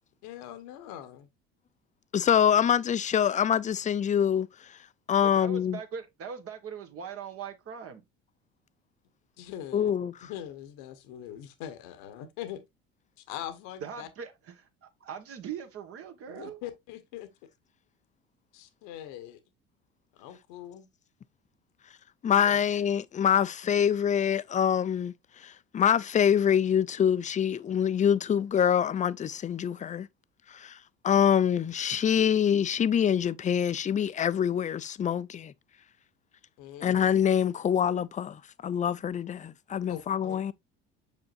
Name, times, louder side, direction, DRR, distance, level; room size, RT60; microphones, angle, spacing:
voice 1, 0.2-1.3 9.4-9.9 10.2-12.6 13.2-14.1 16.3-17.3 18.5-19.4 20.1-20.9 22.2-22.6 36.6-36.9 39.9-40.4, left 11 dB, 70° left, 1.1 m, -42 dB
voice 2, 2.1-4.5 5.1-5.8 9.7-10.1 22.2-25.1 25.4-30.1 30.5-30.8 31.0-35.5 36.8-40.5, left 8 dB, 25° left, 0.5 m, -25 dB
voice 3, 5.2-8.0 13.8-16.6, right 7 dB, 50° right, 1.5 m, -41 dB
6.9 x 5.4 x 2.6 m
hypercardioid pair, 75°, 29 cm